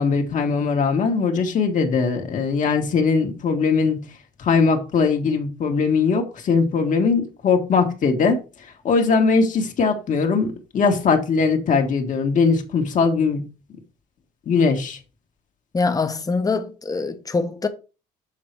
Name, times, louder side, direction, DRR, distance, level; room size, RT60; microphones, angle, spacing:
voice 1, 0.0-4.0 4.4-8.4 8.8-13.4 14.5-15.0, left 5 dB, 50° left, 1.6 m, -20 dB
voice 2, 15.7-17.7, left 4 dB, 20° left, 1.0 m, -24 dB
7.3 x 3.9 x 4.6 m
cardioid pair, 110°, 17 cm